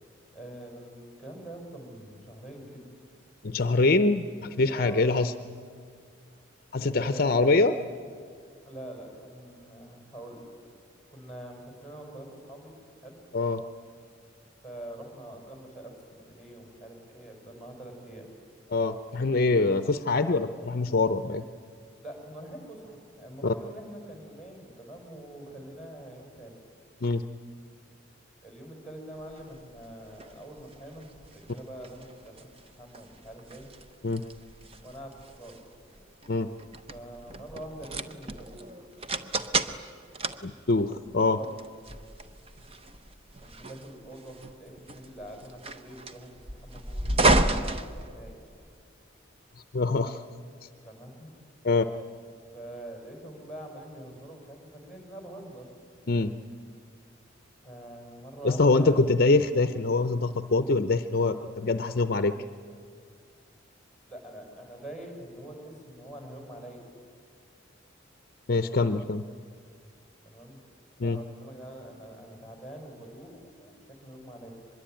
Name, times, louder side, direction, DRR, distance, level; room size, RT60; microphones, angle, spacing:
voice 1, 0.3-2.9 4.7-5.1 6.9-7.5 8.7-10.4 11.1-12.7 13.0-13.2 14.6-18.3 22.0-26.6 28.4-33.7 34.8-35.7 36.9-38.9 40.8-41.5 43.4-48.4 50.8-51.3 52.5-55.7 57.6-59.1 64.1-66.8 70.2-70.6 71.0-74.5, right 1 dB, ahead, 2 dB, 5.4 m, -44 dB
voice 2, 3.4-5.3 6.7-7.7 13.3-13.6 18.7-21.4 23.4-23.5 27.0-27.2 34.0-34.2 36.3-36.5 40.4-41.4 49.7-50.2 51.6-51.8 56.1-56.3 58.4-62.3 68.5-69.3 71.0-71.2, left 3 dB, 50° left, 10 dB, 0.6 m, -24 dB
sound 1, 29.3-48.7, right 2 dB, 30° right, 0.8 m, -32 dB
24.0 x 22.0 x 9.1 m, 2.2 s
head